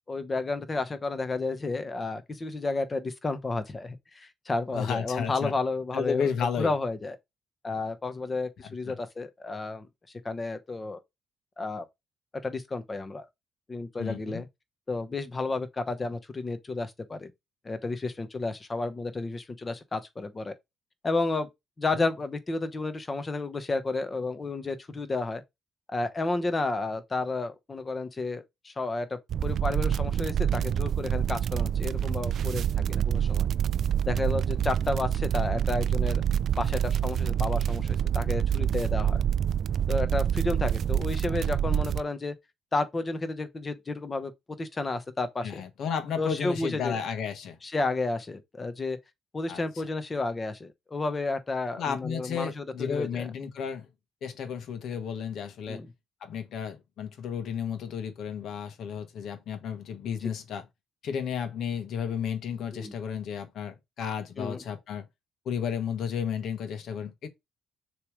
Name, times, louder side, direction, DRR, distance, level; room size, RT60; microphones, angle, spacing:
voice 1, 0.1-6.3 6.6-7.2 7.6-9.9 10.2-11.0 11.6-11.9 12.4-13.3 13.7-14.5 14.9-17.3 17.6-20.5 21.0-21.5 21.8-25.4 25.9-33.5 34.1-36.2 36.6-39.2 39.9-42.4 42.7-44.3 44.6-45.6 46.2-47.0 47.6-49.0 49.3-53.3 55.7-55.9 62.7-62.9 64.4-64.6, left 3 dB, 25° left, 1.0 m, -31 dB
voice 2, 4.7-5.5 5.9-6.7 8.9-9.0 14.0-14.4 21.9-22.1 41.3-41.4 45.4-47.6 49.5-49.6 51.8-53.9 54.2-55.8 56.2-60.7 61.0-65.0 65.4-67.3, left 7 dB, 65° left, 1.3 m, -33 dB
sound 1, 29.3-42.0, right 9 dB, 55° right, 0.3 m, -27 dB
6.7 x 3.1 x 5.0 m
cardioid pair, 130°, 0 cm